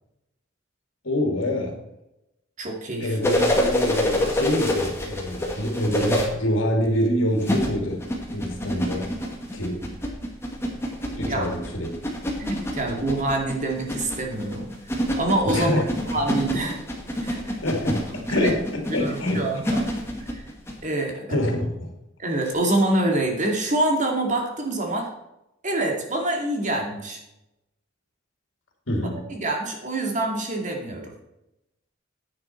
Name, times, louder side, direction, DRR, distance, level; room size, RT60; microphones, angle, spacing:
voice 1, 1.0-1.8 3.0-9.2 9.5-9.9 11.2-11.9 15.5-15.9 17.6-19.6 21.3-21.9 28.9-29.3, equal, 75° left, 2 dB, 2.6 m, -26 dB
voice 2, 2.6-3.2 11.2-11.4 12.4-15.7 16.1-16.8 17.2-17.5 18.3-18.6 18.9-19.8 20.2-20.4 20.8-21.4 22.2-25.1 25.6-27.2 29.3-31.1, right 1 dB, 40° right, 2 dB, 2.3 m, -26 dB
sound 1, 3.2-6.2 7.4-20.8 22.5-22.6, left 1 dB, 15° left, 2.0 m, -27 dB
10.5 x 9.4 x 4.4 m, 0.89 s
head